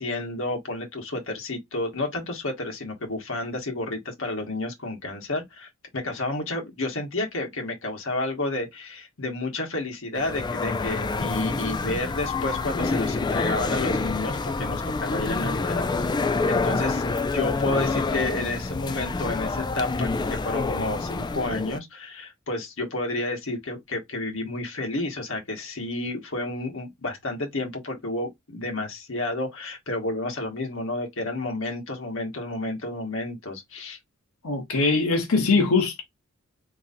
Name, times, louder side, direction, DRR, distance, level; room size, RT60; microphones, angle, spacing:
voice 1, 0.0-15.9 16.2-34.0, left 2 dB, 65° left, 1.3 m, -31 dB
sound 1, 10.2-21.8, left 3 dB, 20° left, 0.3 m, -27 dB
voice 2, 34.4-36.0, left 3 dB, 85° left, 1.1 m, -22 dB
3.8 x 3.0 x 2.6 m
head